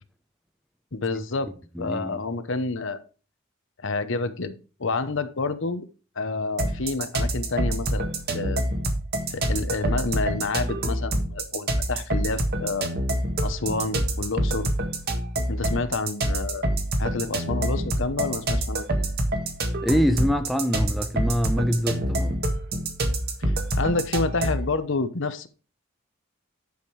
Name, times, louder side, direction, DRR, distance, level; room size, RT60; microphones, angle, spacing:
voice 1, 0.9-1.5 1.8-3.0 3.8-4.5 4.8-5.8 6.2-8.6 9.3-12.9 13.4-14.7 15.5-16.7 17.0-18.9 23.4-25.5, left 3 dB, 65° left, 0.9 m, -28 dB
voice 2, 1.8-2.2 19.8-22.4, equal, ahead, 0.7 m, -24 dB
sound 1, 6.6-24.7, right 1 dB, 50° right, 1.7 m, -26 dB
10.5 x 5.2 x 4.7 m
head